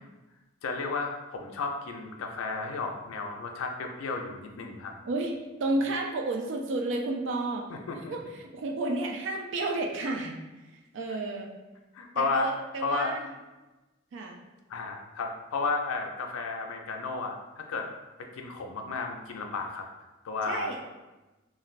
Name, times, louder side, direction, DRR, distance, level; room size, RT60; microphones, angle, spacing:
voice 1, 0.6-4.9 7.7-8.1 11.9-12.5 12.8-13.1 14.7-17.9 18.2-19.8 20.2-20.7, left 4 dB, 90° left, 3 dB, 0.4 m, -33 dB
voice 2, 5.6-7.7 8.0-10.4 10.9-11.5 12.1-13.3 14.1-14.4 20.5-20.8, right 2 dB, 60° right, 1 dB, 0.3 m, -31 dB
3.1 x 2.5 x 2.4 m, 1.1 s
head